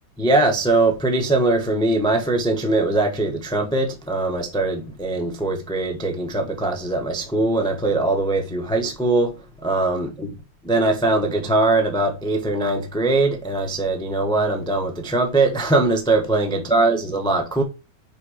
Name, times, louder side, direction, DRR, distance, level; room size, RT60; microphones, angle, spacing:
voice 1, 0.2-9.3 9.6-10.3 10.6-17.6, right 2 dB, 5° left, 0.6 m, -21 dB
5.4 x 5.2 x 4.8 m
omnidirectional pair, 2.2 m